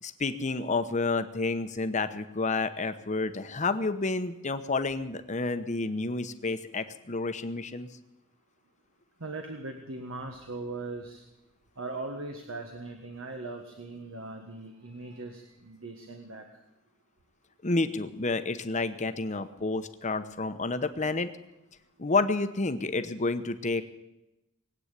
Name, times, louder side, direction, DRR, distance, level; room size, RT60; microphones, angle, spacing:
voice 1, 0.0-7.9 17.6-21.3 22.0-23.8, left 3 dB, 35° left, 10 dB, 0.9 m, -30 dB
voice 2, 9.2-11.2 11.8-16.4, right 2 dB, 80° right, 4 dB, 1.6 m, -39 dB
19.5 x 8.9 x 8.2 m, 0.95 s
head